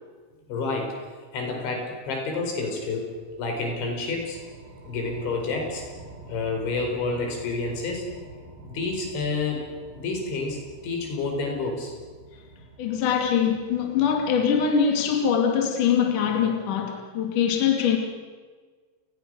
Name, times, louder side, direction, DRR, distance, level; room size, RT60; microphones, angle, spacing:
voice 1, 0.5-1.0 1.3-4.4 4.9-5.9 6.3-8.1 8.6-9.7 10.0-11.9, left 3 dB, 80° left, 6.9 m, -29 dB
sound 1, 2.5-15.0, right 3 dB, 90° right, 9.3 m, -47 dB
voice 2, 12.8-18.0, left 7 dB, 50° left, 3.6 m, -23 dB
29.5 x 20.0 x 6.4 m
omnidirectional pair, 5.3 m